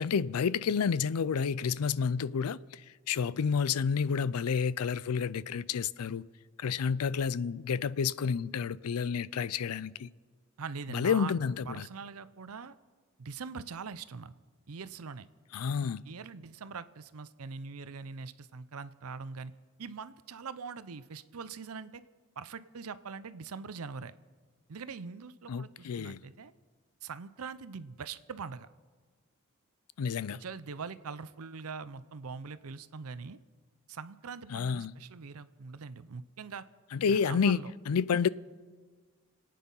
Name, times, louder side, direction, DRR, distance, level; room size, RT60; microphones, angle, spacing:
voice 1, 0.0-2.8 3.1-6.2 6.6-10.1 10.9-11.9 15.5-16.0 25.5-26.2 30.0-30.4 34.5-34.9 36.9-38.3, left 6 dB, 85° left, 0.4 m, -30 dB
voice 2, 10.6-11.3 11.7-12.8 13.2-14.3 14.7-15.3 16.0-19.5 19.8-22.0 22.4-24.1 24.7-26.5 27.0-28.7 30.3-33.4 33.9-36.6 37.1-37.7, right 5 dB, 80° right, 0.6 m, -42 dB
27.0 x 9.3 x 5.5 m
head